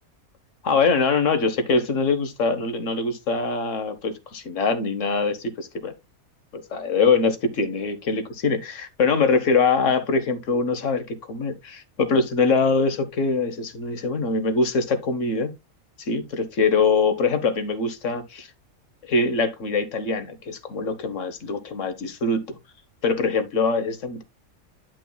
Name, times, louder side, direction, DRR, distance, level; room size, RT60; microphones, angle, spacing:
voice 1, 0.6-5.9 6.5-15.5 16.0-18.5 19.1-22.6 23.0-24.2, left 4 dB, 60° left, 1.4 m, -23 dB
10.0 x 6.2 x 2.2 m
omnidirectional pair, 1.5 m